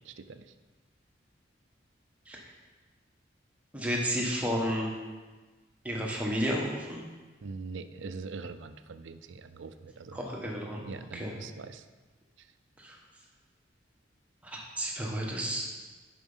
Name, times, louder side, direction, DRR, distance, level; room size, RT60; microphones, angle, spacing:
voice 1, 0.1-0.5 7.4-10.2 10.8-11.8, right 4 dB, 75° right, 10 dB, 0.5 m, -42 dB
voice 2, 3.7-4.9 5.8-7.0 10.1-10.8 11.1-11.4 12.8-13.0 14.4-15.7, equal, 5° right, -2 dB, 1.2 m, -32 dB
7.1 x 5.9 x 5.6 m, 1.3 s
head